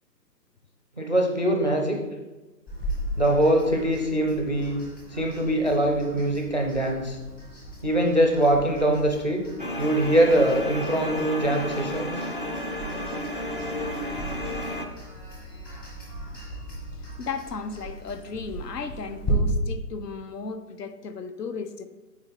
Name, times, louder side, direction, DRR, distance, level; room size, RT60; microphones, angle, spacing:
voice 1, 1.0-2.0 3.2-4.8 5.1-7.2 7.8-9.4 9.8-12.1, right 1 dB, 30° right, 2 dB, 0.4 m, -23 dB
sound 1, 2.7-19.3, equal, 15° left, 0.9 m, -39 dB
sound 2, 9.6-14.9, left 1 dB, 35° left, 0.4 m, -32 dB
voice 2, 17.2-21.9, left 5 dB, 75° left, 10 dB, 0.9 m, -35 dB
8.7 x 4.2 x 4.2 m, 1.1 s
hypercardioid pair, 160°, 49 cm